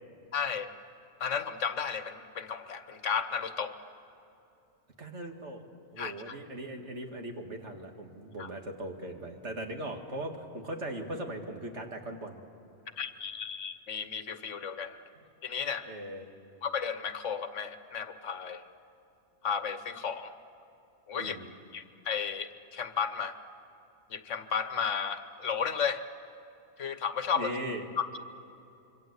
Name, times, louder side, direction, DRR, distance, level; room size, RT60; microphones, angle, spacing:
voice 1, 0.3-0.7 1.2-3.7 6.0-6.4 8.4-8.5 13.0-15.0 15.4-15.9 16.6-18.6 19.4-20.3 21.1-21.4 21.7-23.3 24.1-26.0 26.8-27.5 28.0-28.2, left 6 dB, 75° left, 10 dB, 1.4 m, -33 dB
voice 2, 5.0-5.7 5.9-12.4 15.8-16.3 21.2-21.5 27.3-27.8, right 1 dB, 65° right, 3 dB, 2.4 m, -39 dB
26.5 x 24.0 x 8.2 m, 2.8 s
omnidirectional pair, 1.3 m